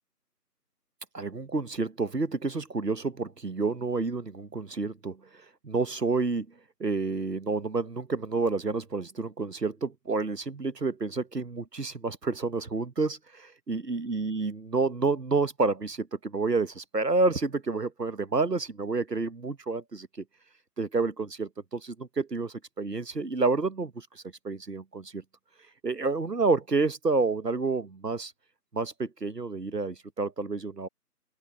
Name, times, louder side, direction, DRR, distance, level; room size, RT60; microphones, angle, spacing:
voice 1, 1.1-5.2 5.6-6.5 6.8-13.2 13.7-20.1 20.8-25.2 25.8-28.3 28.7-30.9, right 3 dB, 85° right, 1.3 m, -29 dB
open air
figure-of-eight pair, 170°, 47 cm